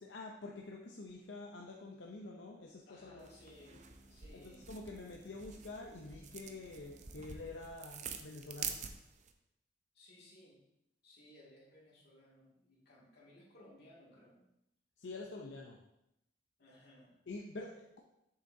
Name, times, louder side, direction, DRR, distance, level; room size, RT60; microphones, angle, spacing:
voice 1, 0.0-3.3 3.7-3.8 4.3-8.8 15.0-15.8 17.3-18.0, left 2 dB, 85° left, 0 dB, 0.7 m, -47 dB
sound 1, 2.2-7.5, equal, 5° left, 2.6 m, -64 dB
voice 2, 2.9-3.8 4.1-4.7 9.9-10.6 11.0-14.5 16.6-17.2, left 1 dB, 60° left, -4 dB, 2.3 m, -60 dB
sound 2, 3.2-9.3, right 7 dB, 40° right, 0.6 m, -47 dB
7.7 x 6.8 x 2.7 m, 0.86 s
head